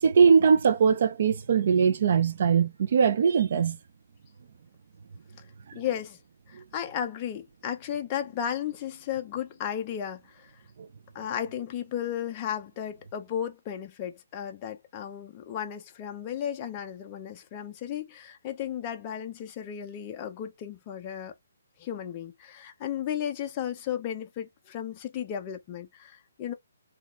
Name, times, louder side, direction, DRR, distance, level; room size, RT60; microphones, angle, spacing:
voice 1, 0.0-3.8, right 6 dB, 45° right, 0.6 m, -21 dB
voice 2, 5.7-6.2 6.5-10.5 11.1-21.3 21.8-26.5, left 9 dB, 20° left, 0.6 m, -34 dB
4.2 x 2.4 x 3.0 m
hypercardioid pair, 165°, 0 cm